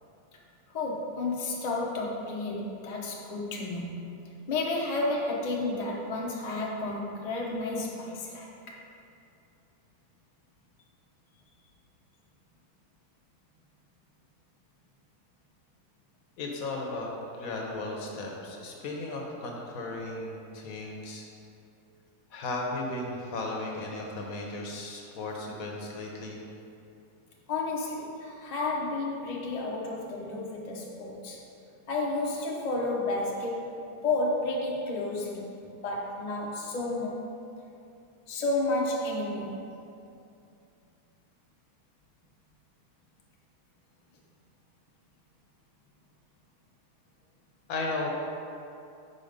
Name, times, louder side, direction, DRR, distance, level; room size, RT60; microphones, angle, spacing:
voice 1, 0.7-3.9 4.5-8.8 27.5-31.4 31.9-33.8 34.0-37.2 38.3-39.7, left 2 dB, 40° left, -3 dB, 0.6 m, -31 dB
voice 2, 16.4-17.1 17.4-21.3 22.3-26.4 47.7-48.1, left 2 dB, 65° left, 0 dB, 1.2 m, -35 dB
5.4 x 4.2 x 5.1 m, 2.7 s
omnidirectional pair, 1.7 m